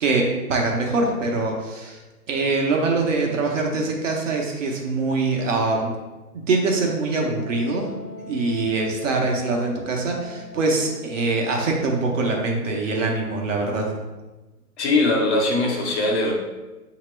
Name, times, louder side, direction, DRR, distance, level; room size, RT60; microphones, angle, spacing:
voice 1, 0.0-2.0 2.3-5.9 6.3-7.9 8.3-13.9, right 3 dB, 55° right, 0 dB, 1.0 m, -23 dB
Wind instrument woodwind instrument, 7.4-12.9, left 4 dB, 10° left, 0.4 m, -41 dB
voice 2, 14.8-16.3, left 2 dB, 45° left, -1 dB, 1.1 m, -21 dB
5.5 x 2.9 x 3.2 m, 1.1 s
hypercardioid pair, 145°, 46 cm